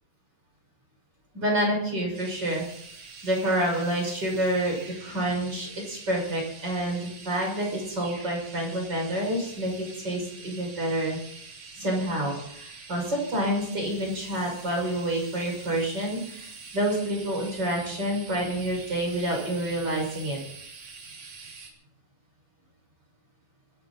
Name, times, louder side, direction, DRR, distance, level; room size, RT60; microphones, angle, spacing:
voice 1, 1.3-2.6 3.2-11.2 11.8-20.4, right 1 dB, 30° right, 0 dB, 6.7 m, -28 dB
sound 1, 2.1-21.7, right 4 dB, 65° right, 4.4 m, -45 dB
25.0 x 11.5 x 4.2 m, 0.69 s
omnidirectional pair, 3.8 m